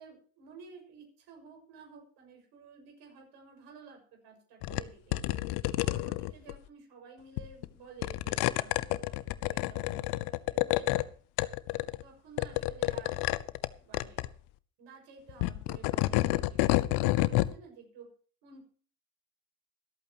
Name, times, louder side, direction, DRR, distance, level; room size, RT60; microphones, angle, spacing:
voice 1, 0.0-5.4 5.8-11.1 12.0-13.2 13.7-14.3 14.8-18.1 18.4-18.6, right 5 dB, 70° right, 3 dB, 6.2 m, -53 dB
sound 1, 4.6-4.8 5.1-6.5 7.4-7.7 8.0-11.0 11.4-12.0 12.4-13.7 13.9-14.3 15.3-17.5, left 19 dB, 70° left, 0.8 m, -29 dB
24.5 x 8.5 x 3.0 m, 0.43 s
hypercardioid pair, 65°, 42 cm